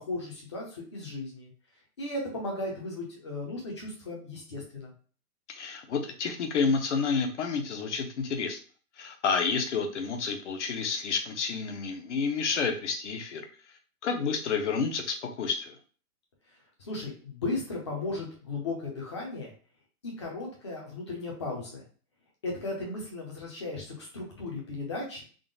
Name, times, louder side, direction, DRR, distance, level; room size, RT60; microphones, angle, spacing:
voice 1, 0.0-1.5 2.0-4.9 16.8-19.5 20.0-21.8 22.4-25.2, left 2 dB, 20° left, -1 dB, 0.6 m, -36 dB
voice 2, 5.5-8.6 9.0-13.4 14.0-15.8, left 5 dB, 50° left, 4 dB, 0.8 m, -30 dB
3.7 x 2.0 x 3.8 m, 0.40 s
hypercardioid pair, 170°, 47 cm